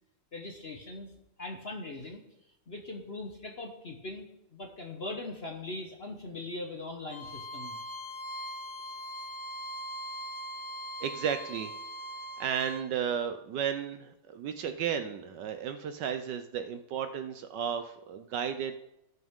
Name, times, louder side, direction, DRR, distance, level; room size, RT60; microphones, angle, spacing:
voice 1, 0.3-1.1 1.4-2.2 2.7-4.3 4.5-7.8, left 2 dB, 40° left, 2 dB, 1.0 m, -40 dB
Bowed string instrument, 7.1-12.8, equal, 55° left, 2.7 m, -41 dB
voice 2, 11.0-11.7 12.4-18.7, right 8 dB, 70° right, 9 dB, 1.2 m, -33 dB
17.5 x 6.0 x 3.6 m, 0.86 s
omnidirectional pair, 2.2 m